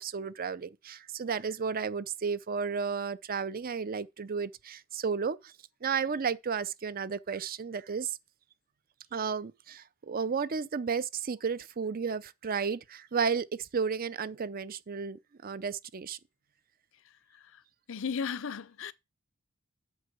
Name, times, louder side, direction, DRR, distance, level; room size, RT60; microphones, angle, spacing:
voice 1, 0.0-5.5 5.8-8.2 9.1-16.2, right 6 dB, 45° right, 0.5 m, -33 dB
voice 2, 17.9-18.9, left 6 dB, 65° left, 0.6 m, -34 dB
8.1 x 4.4 x 6.7 m
head